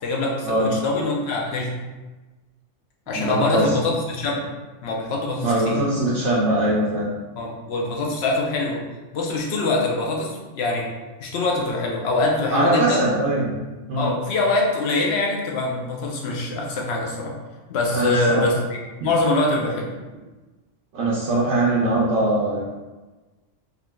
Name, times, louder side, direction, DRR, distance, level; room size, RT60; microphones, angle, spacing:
voice 1, 0.0-1.8 3.1-4.5 4.8-5.8 7.4-8.8 9.1-10.9 11.2-13.0 14.0-17.3 17.7-19.9, left 2 dB, 65° left, -1 dB, 0.8 m, -24 dB
voice 2, 3.1-3.7 5.4-7.1 12.5-13.5 13.9-14.1 17.9-18.4 19.0-19.1 20.9-22.7, right 1 dB, 80° right, -7 dB, 0.9 m, -21 dB
3.6 x 2.5 x 2.2 m, 1.2 s
omnidirectional pair, 1.2 m